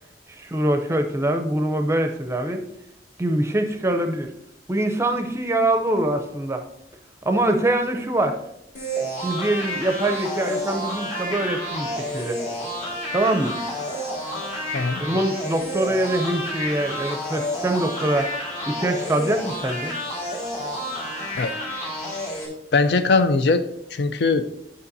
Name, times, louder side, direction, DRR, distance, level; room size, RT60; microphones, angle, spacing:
voice 1, 0.4-2.6 3.2-4.3 4.7-6.6 7.2-8.4 9.2-12.4 13.1-13.6 15.0-18.3 18.7-19.9, right 1 dB, 15° right, 6 dB, 0.6 m, -23 dB
sound 1, 8.7-22.5, equal, 40° left, 1.7 m, -30 dB
voice 2, 14.7-15.1 21.3-21.5 22.7-23.6 23.9-24.4, left 4 dB, 65° left, 10 dB, 0.5 m, -20 dB
9.8 x 5.4 x 2.7 m, 0.80 s
head